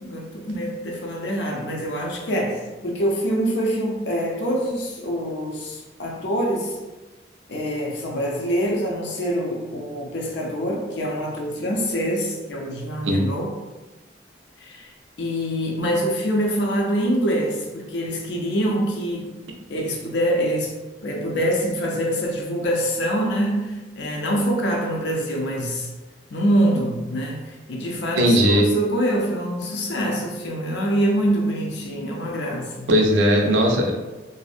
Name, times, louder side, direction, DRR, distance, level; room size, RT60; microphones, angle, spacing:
voice 1, 0.0-6.8 7.5-13.5 14.6-14.9 15.2-19.3 19.7-20.7 21.0-25.9 26.3-32.9, equal, 70° left, 0 dB, 0.5 m, -25 dB
voice 2, 28.1-28.7 32.9-33.9, equal, 85° right, 1 dB, 0.4 m, -17 dB
2.6 x 2.0 x 2.4 m, 1.2 s
head